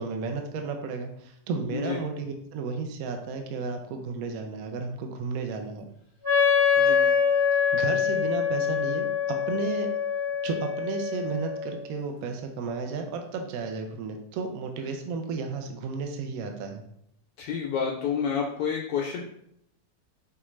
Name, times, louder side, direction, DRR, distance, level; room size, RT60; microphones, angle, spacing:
voice 1, 0.0-5.9 7.7-9.9 10.4-16.8, right 4 dB, 70° right, 4 dB, 0.9 m, -33 dB
Wind instrument woodwind instrument, 6.2-11.9, left 7 dB, 40° right, 1.1 m, -25 dB
voice 2, 6.8-7.1 17.4-19.3, left 7 dB, 75° left, -1 dB, 1.1 m, -29 dB
5.6 x 2.3 x 3.0 m, 0.75 s
omnidirectional pair, 1.9 m